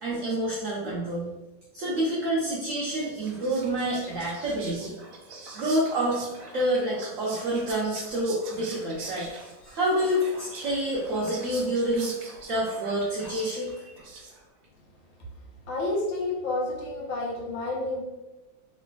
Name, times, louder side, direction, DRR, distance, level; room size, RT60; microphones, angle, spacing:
voice 1, 0.0-1.3 1.7-4.9 5.5-6.2 6.5-9.3 9.6-12.1 12.5-13.8, right 1 dB, 80° right, -6 dB, 0.7 m, -28 dB
Whispering, 2.7-14.6, right 3 dB, 65° right, 1.1 m, -43 dB
voice 2, 15.7-18.0, left 2 dB, 80° left, -2 dB, 1.6 m, -30 dB
3.2 x 3.2 x 2.3 m, 1.0 s
omnidirectional pair, 2.1 m